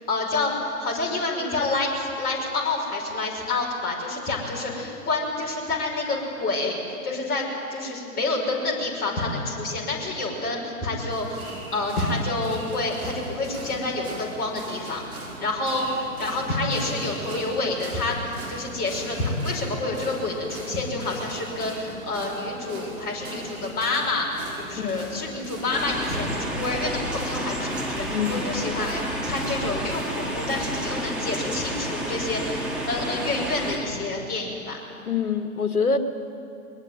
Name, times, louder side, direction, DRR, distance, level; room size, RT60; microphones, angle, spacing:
voice 1, 0.1-11.4 11.7-24.3 24.6-34.8, left 2 dB, 20° left, -2 dB, 5.6 m, -28 dB
sound 1, 11.1-30.9, right 2 dB, 70° right, 6.4 m, -40 dB
voice 2, 24.8-25.1 28.1-28.5 35.1-36.0, left 5 dB, 75° left, 6 dB, 2.2 m, -25 dB
sound 2, 25.7-33.8, right 1 dB, ahead, 3.2 m, -30 dB
22.0 x 21.0 x 9.2 m, 2.6 s
figure-of-eight pair, 120°, 44 cm